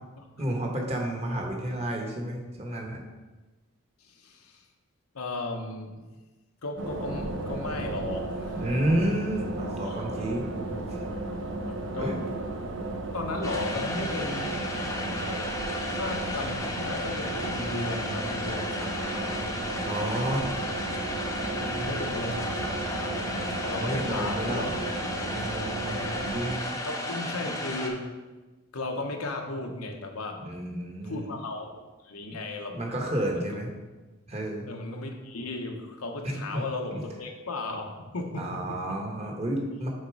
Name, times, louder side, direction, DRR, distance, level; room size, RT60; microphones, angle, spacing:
voice 1, 0.4-3.0 8.6-10.7 12.0-12.2 19.8-20.5 21.8-22.0 23.8-24.7 25.3-26.7 30.4-31.3 32.7-33.7 34.3-34.7 36.2-36.6 36.9-37.0 38.4-39.9, right 1 dB, 30° right, 1 dB, 1.0 m, -31 dB
voice 2, 4.0-4.6 5.1-6.0 6.6-8.7 9.8-10.0 11.7-12.2 13.1-14.6 15.9-19.4 21.5-23.3 23.6-24.9 26.8-28.1 28.7-30.4 31.0-31.8 32.0-32.8 33.3-33.5 34.7-39.0, left 2 dB, 85° left, 3 dB, 0.9 m, -35 dB
sound 1, 6.8-26.6, right 2 dB, 55° right, 0.7 m, -34 dB
sound 2, 13.4-27.9, left 1 dB, 15° left, 0.6 m, -34 dB
6.6 x 4.1 x 4.7 m, 1.2 s
head